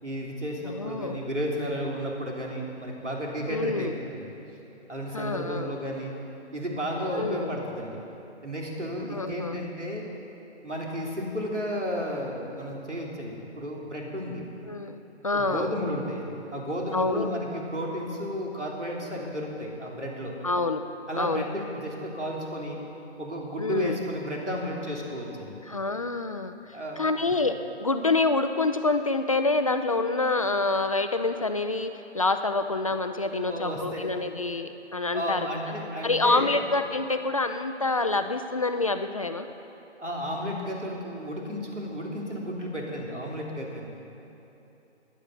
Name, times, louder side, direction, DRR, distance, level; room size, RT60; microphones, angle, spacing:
voice 1, 0.0-4.3 4.9-6.1 6.5-8.0 8.4-10.1 10.6-14.4 15.3-20.3 21.1-22.8 23.2-25.6 26.7-27.3 33.3-34.1 35.1-36.6 40.0-43.9, equal, 85° right, -2 dB, 3.4 m, -33 dB
voice 2, 0.6-1.2 3.5-3.9 5.1-5.7 7.1-7.5 9.0-9.6 14.7-15.7 16.9-17.3 20.4-20.8 21.1-21.5 23.6-24.0 25.7-26.5 27.0-35.5 36.0-39.5, left 3 dB, 30° left, 8 dB, 0.4 m, -27 dB
16.0 x 10.5 x 6.0 m, 2.9 s
figure-of-eight pair, 140°, 35 cm